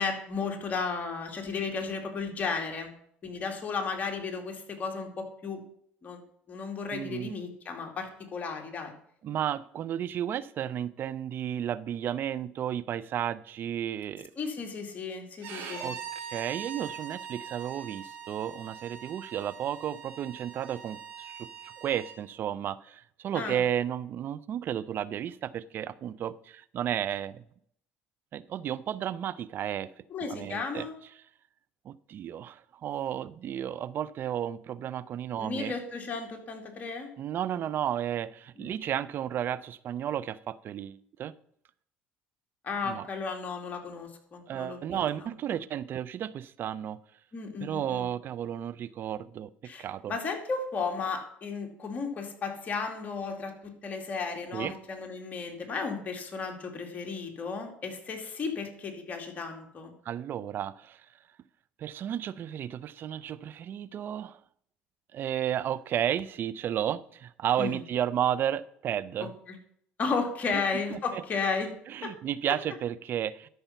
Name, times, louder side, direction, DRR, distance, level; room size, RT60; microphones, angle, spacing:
voice 1, 0.0-2.9 3.2-5.6 6.0-6.2 6.5-8.9 14.4-15.9 23.3-23.6 30.1-30.9 35.4-37.1 38.6-38.7 42.6-45.0 47.3-48.0 49.7-59.9 67.6-67.8 69.5-69.6 70.0-71.7 72.0-72.1, left 4 dB, 35° left, 3 dB, 2.4 m, -34 dB
voice 2, 6.9-7.3 9.2-14.3 15.8-27.4 28.3-29.9 30.2-30.9 31.8-35.7 37.2-41.3 42.9-43.1 44.5-47.0 47.6-49.5 49.8-50.1 54.5-54.7 60.0-61.1 61.8-64.4 65.1-69.3 70.5-70.6 70.9-71.2 71.9-73.5, right 10 dB, 50° right, 18 dB, 0.5 m, -33 dB
Bowed string instrument, 15.4-22.2, right 7 dB, 75° right, 2.8 m, -42 dB
12.5 x 5.6 x 5.7 m, 0.67 s
supercardioid pair, 90°, 5 cm